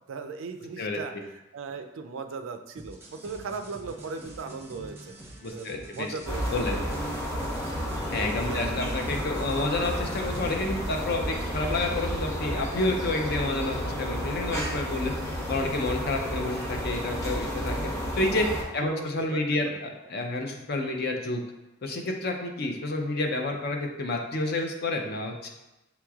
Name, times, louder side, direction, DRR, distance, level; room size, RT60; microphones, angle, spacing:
voice 1, 0.1-5.1 5.5-7.0 8.4-8.7 18.8-19.7, right 4 dB, 85° right, 7 dB, 0.4 m, -38 dB
sound 1, 2.8-10.6, right 2 dB, 10° right, 0.6 m, -46 dB
voice 2, 5.4-6.1 6.5-6.8 8.1-15.1 15.5-17.9 18.2-18.5 18.7-21.4 21.8-25.5, left 2 dB, 55° left, 3 dB, 0.6 m, -29 dB
sound 2, 6.3-18.6, equal, 15° left, 0.8 m, -31 dB
6.9 x 3.0 x 2.3 m, 0.96 s
head